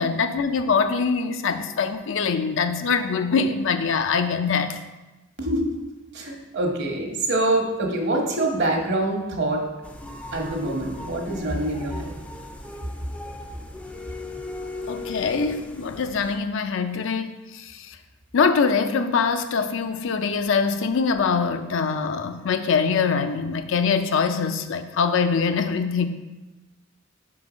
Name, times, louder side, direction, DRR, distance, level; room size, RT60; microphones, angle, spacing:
voice 1, 0.0-4.8 14.9-18.0 18.3-26.1, left 5 dB, 65° left, 8 dB, 0.5 m, -23 dB
voice 2, 5.4-5.8 6.1-9.7 10.3-12.1, right 1 dB, 55° right, 2 dB, 1.0 m, -25 dB
sound 1, 9.8-16.4, left 2 dB, 5° left, 0.4 m, -38 dB
5.7 x 3.9 x 4.9 m, 1.1 s
head